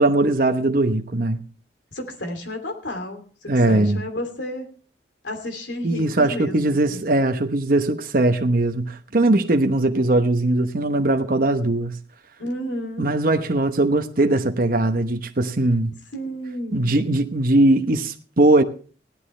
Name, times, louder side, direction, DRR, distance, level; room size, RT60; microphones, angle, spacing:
voice 1, 0.0-1.4 3.5-4.0 5.8-12.0 13.0-15.9 16.7-18.6, right 2 dB, 50° right, 0.9 m, -20 dB
voice 2, 1.9-4.6 5.2-7.1 12.4-13.1 16.1-17.0, equal, 80° left, 2.9 m, -32 dB
17.5 x 12.0 x 3.3 m
head